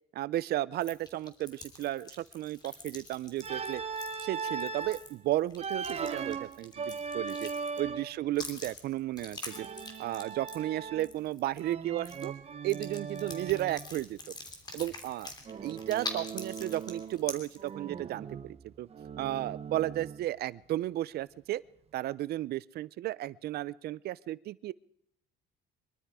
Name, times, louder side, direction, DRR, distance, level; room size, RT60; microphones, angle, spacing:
voice 1, 0.1-3.8 4.2-7.5 7.8-9.7 10.0-12.3 12.6-14.4 14.7-15.3 15.6-18.9 19.2-21.6 21.9-24.7, right 14 dB, 55° right, 20 dB, 0.5 m, -34 dB
sound 1, 0.8-7.9 8.3-11.7 12.0-12.3 12.7-17.7, left 2 dB, 20° left, 3.1 m, -44 dB
Organ, 3.4-5.0 5.6-8.2 9.5-11.2 11.6-13.9 15.5-17.3 17.6-20.3, right 5 dB, 30° right, 1.2 m, -39 dB
23.0 x 12.5 x 4.9 m, 0.72 s
cardioid pair, 135°, 19 cm